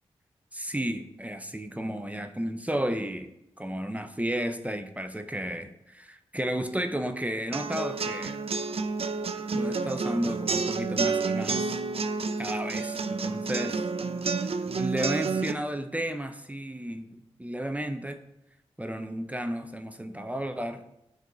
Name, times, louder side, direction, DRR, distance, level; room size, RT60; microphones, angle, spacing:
voice 1, 0.5-3.3 3.6-8.4 9.5-11.8 12.1-13.9 14.8-18.2 18.8-20.8, right 1 dB, 10° right, 7 dB, 0.7 m, -33 dB
sound 1, 7.5-15.5, right 4 dB, 55° right, 0.6 m, -29 dB
11.0 x 4.7 x 4.0 m, 0.85 s
cardioid pair, 45°, 12 cm